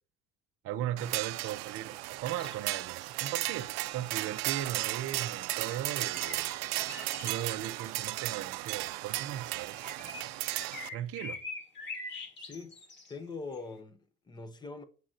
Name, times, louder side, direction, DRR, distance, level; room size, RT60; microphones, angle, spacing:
voice 1, 0.6-6.5 7.2-10.3 10.9-11.4, right 11 dB, 40° right, 0.5 m, -38 dB
sound 1, 1.0-10.9, right 18 dB, 90° right, 0.5 m, -35 dB
sound 2, 2.4-2.7 3.0-3.1 3.5-3.7 5.6-8.0 8.9-13.1 13.5-13.6, left 3 dB, 30° left, 1.2 m, -44 dB
voice 2, 12.4-12.8 13.1-14.8, left 4 dB, 10° left, 0.5 m, -43 dB
7.5 x 2.6 x 5.7 m
cardioid pair, 170°, 36 cm